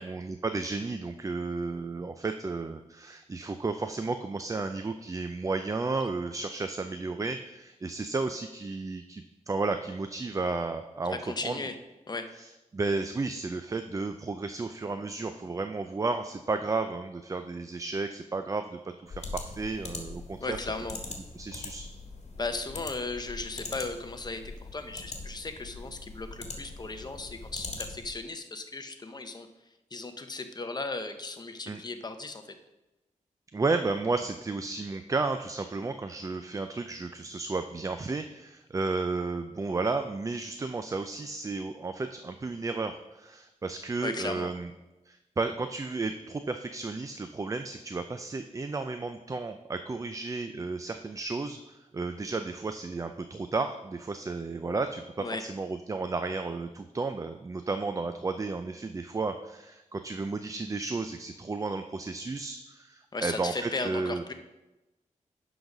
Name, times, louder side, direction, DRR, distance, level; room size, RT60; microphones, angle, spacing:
voice 1, 0.0-11.6 12.4-12.5 12.7-20.6 21.4-21.9 31.7-31.8 33.5-44.7 45.0-64.2, right 3 dB, 25° right, 8 dB, 0.4 m, -33 dB
voice 2, 11.1-11.8 12.1-12.3 20.4-21.0 22.4-29.5 29.9-32.5 44.0-44.5 55.2-55.5 63.1-64.3, left 3 dB, 30° left, 8 dB, 0.7 m, -36 dB
sound 1, 19.1-28.2, left 3 dB, 55° left, 1.5 m, -42 dB
10.0 x 4.0 x 6.0 m, 1.0 s
wide cardioid pair, 115°, 13 cm